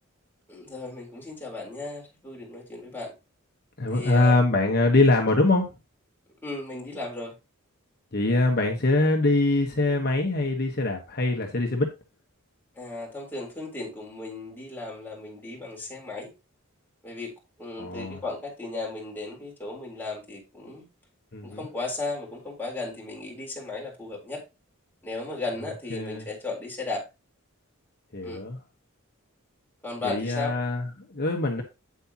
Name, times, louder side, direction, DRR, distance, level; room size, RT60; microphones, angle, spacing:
voice 1, 0.5-3.1 3.9-4.3 6.4-7.3 12.8-16.3 17.0-17.3 17.6-20.9 21.4-24.4 25.0-27.0 28.2-28.4 29.8-30.5, left 3 dB, 10° left, 3.7 m, -35 dB
voice 2, 3.8-5.7 8.1-11.9 17.8-18.2 21.3-21.7 25.9-26.3 28.1-28.6 30.0-31.6, left 2 dB, 50° left, 1.2 m, -23 dB
8.5 x 7.9 x 2.9 m
head